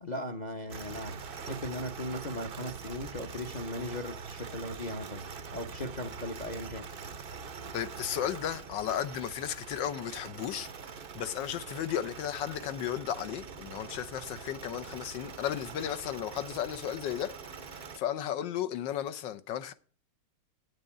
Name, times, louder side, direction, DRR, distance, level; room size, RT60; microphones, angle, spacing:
voice 1, 0.0-5.2 5.5-6.9, left 1 dB, 45° left, 0.6 m, -38 dB
sound 1, 0.7-18.0, right 5 dB, 60° right, 0.5 m, -44 dB
voice 2, 7.7-19.7, left 10 dB, 90° left, 1.5 m, -35 dB
9.3 x 6.7 x 8.5 m
omnidirectional pair, 1.9 m